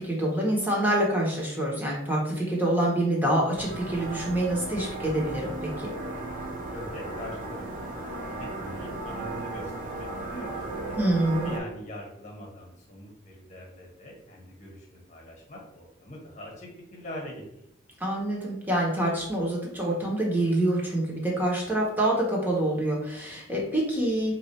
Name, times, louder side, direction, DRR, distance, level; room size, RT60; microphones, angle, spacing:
voice 1, 0.0-5.9 11.0-11.5 18.0-24.4, right 1 dB, 10° right, -3 dB, 0.8 m, -26 dB
sound 1, 3.5-11.6, right 2 dB, 40° right, 0.6 m, -35 dB
voice 2, 6.7-7.6 8.0-11.0 11.4-17.6, equal, 35° left, -1 dB, 1.1 m, -42 dB
3.0 x 2.4 x 4.2 m, 0.78 s
head